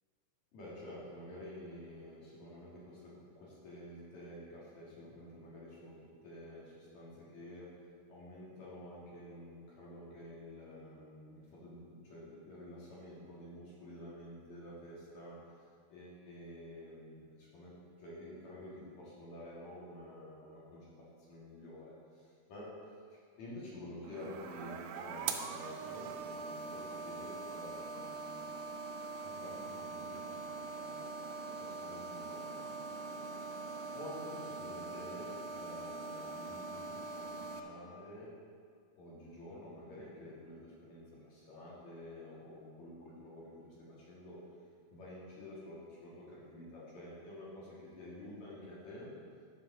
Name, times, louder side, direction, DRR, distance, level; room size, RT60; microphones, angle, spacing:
voice 1, 0.5-6.0 6.2-22.7 23.1-28.4 29.2-30.4 30.7-31.1 31.6-32.8 33.1-33.2 33.9-38.3 39.0-44.4 44.9-49.1, left 1 dB, 55° left, -6 dB, 2.1 m, -50 dB
sound 1, 24.0-37.6, right 4 dB, 85° right, 2.4 m, -43 dB
12.0 x 6.9 x 3.8 m, 2.1 s
omnidirectional pair, 5.7 m